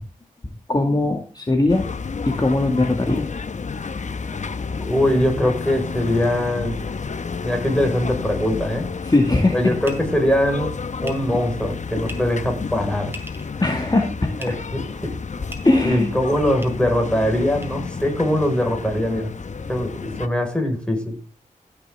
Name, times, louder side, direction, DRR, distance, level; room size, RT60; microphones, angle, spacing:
voice 1, 0.7-1.8 2.3-3.3 9.0-9.6 13.6-14.6 15.6-16.1, left 2 dB, 30° left, 3 dB, 2.1 m, -20 dB
sound 1, 1.7-20.3, left 5 dB, 55° left, 0.9 m, -31 dB
voice 2, 4.8-6.8 7.4-8.9 9.5-10.8 11.0-13.1 14.4-15.2 15.7-19.3 19.7-21.2, left 1 dB, 5° left, 3 dB, 5.2 m, -22 dB
sound 2, 9.8-10.0 11.0-11.1 12.0-12.2 13.1-13.5 14.4-14.5 15.5-15.6 16.6-16.7 17.6-17.7, equal, 15° right, 3.6 m, -36 dB
16.0 x 7.1 x 3.7 m, 0.32 s
cardioid pair, 45°, 14 cm